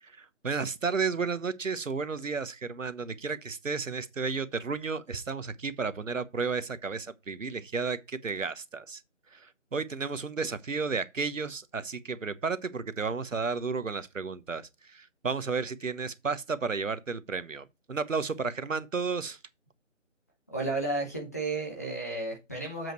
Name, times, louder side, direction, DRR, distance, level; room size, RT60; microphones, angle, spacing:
voice 1, 0.0-9.0 9.3-19.4, right 4 dB, 80° right, 1.1 m, -33 dB
voice 2, 20.5-22.9, right 2 dB, 15° left, 0.8 m, -32 dB
7.5 x 5.3 x 4.5 m
figure-of-eight pair, 165°, 38 cm